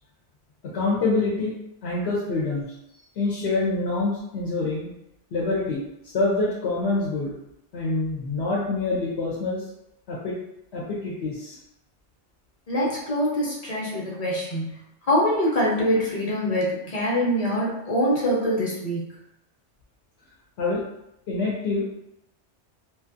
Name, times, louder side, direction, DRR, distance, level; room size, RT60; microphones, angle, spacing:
voice 1, 0.7-1.5 1.8-2.7 3.2-4.9 5.3-5.8 6.1-7.3 7.7-9.6 10.1-10.4 10.7-11.6 20.6-20.8 21.3-21.8, left 3 dB, 65° left, -5 dB, 0.9 m, -26 dB
voice 2, 12.7-14.7 15.0-19.1, equal, 35° left, -5 dB, 0.7 m, -24 dB
2.5 x 2.3 x 2.5 m, 0.85 s
omnidirectional pair, 1.2 m